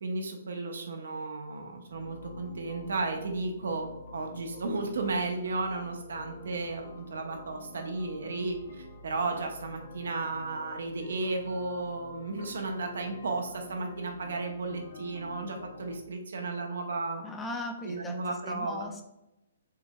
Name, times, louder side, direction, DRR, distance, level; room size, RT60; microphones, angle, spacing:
voice 1, 0.0-3.9 4.1-17.2 17.8-18.8, right 3 dB, 65° right, 3 dB, 0.7 m, -34 dB
sound 1, 1.9-16.0, left 2 dB, 60° left, 0.7 m, -48 dB
voice 2, 17.2-19.0, left 2 dB, 10° left, 4 dB, 0.4 m, -38 dB
4.6 x 2.8 x 2.2 m, 0.90 s
figure-of-eight pair, 125°, 0 cm